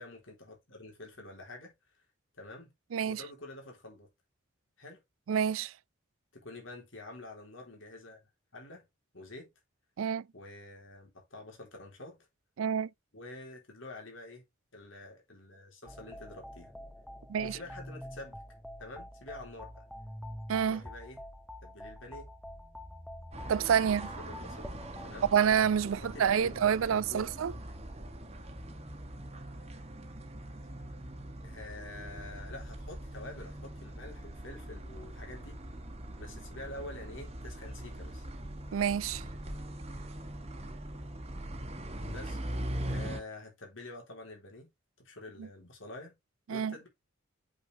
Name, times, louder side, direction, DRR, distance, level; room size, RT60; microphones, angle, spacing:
voice 1, 0.0-1.7 2.4-2.7 3.1-4.1 4.8-5.0 6.3-8.2 8.5-8.9 9.1-9.5 10.3-12.2 13.1-14.4 14.7-16.7 17.4-18.4 18.8-19.8 20.7-21.2 21.6-22.3 24.3-24.7 25.0-25.3 26.0-26.6 27.1-27.3 31.4-35.6 36.2-38.3 42.0-42.4 42.9-44.7 45.0-46.2 46.5-46.9, left 2 dB, 75° left, 3.5 m, -47 dB
voice 2, 2.9-3.2 5.3-5.7 10.0-10.3 12.6-12.9 17.3-17.6 20.5-20.8 23.5-24.1 25.3-27.5 38.7-39.2 45.4-45.5 46.5-46.7, right 8 dB, 90° right, 0.4 m, -28 dB
sound 1, 15.9-25.1, left 1 dB, ahead, 0.5 m, -46 dB
sound 2, 23.3-43.2, right 1 dB, 30° right, 1.3 m, -42 dB
8.1 x 4.7 x 3.3 m
head